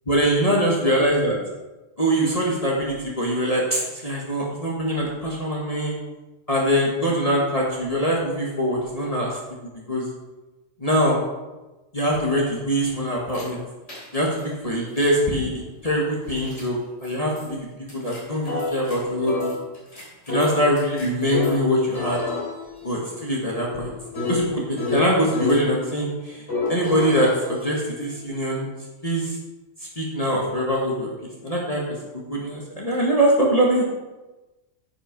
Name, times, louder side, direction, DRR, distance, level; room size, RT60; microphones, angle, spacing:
voice 1, 0.1-1.4 2.0-5.9 6.5-9.4 9.9-10.1 10.8-11.2 11.9-13.6 14.1-17.6 17.9-19.6 20.3-22.2 22.8-23.9 24.3-28.7 29.0-29.4 30.0-31.8 32.1-33.8, equal, 30° left, -4 dB, 1.6 m, -23 dB
sound 1, 13.3-13.4 13.9-14.4 15.0-15.1 16.3-16.6 17.0-17.1 17.4-17.5 17.9-19.0 19.3-21.6 21.9-25.6 26.5-28.3, left 3 dB, 65° left, 4.0 m, -29 dB
9.7 x 6.2 x 5.2 m, 1.1 s
omnidirectional pair, 1.3 m